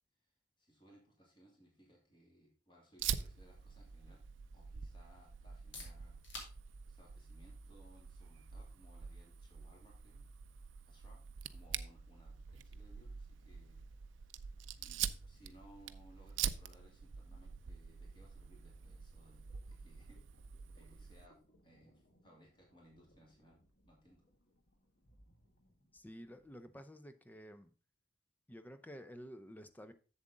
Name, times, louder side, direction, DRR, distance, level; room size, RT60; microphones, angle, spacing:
voice 1, 0.6-4.2 4.5-6.2 6.5-10.2 10.8-13.8 14.1-14.4 14.8-20.2 20.7-21.4 21.6-24.2, equal, 25° left, -2 dB, 2.6 m, -64 dB
Fire, 3.0-21.3, right 8 dB, 75° right, 0.5 m, -45 dB
sound 1, 5.4-21.1, left 2 dB, 80° left, 2.6 m, -61 dB
sound 2, 17.3-26.7, equal, 55° left, 1.5 m, -71 dB
voice 2, 25.9-27.7 28.5-29.9, equal, 10° left, 10 dB, 0.5 m, -51 dB
7.5 x 7.5 x 3.8 m, 0.36 s
head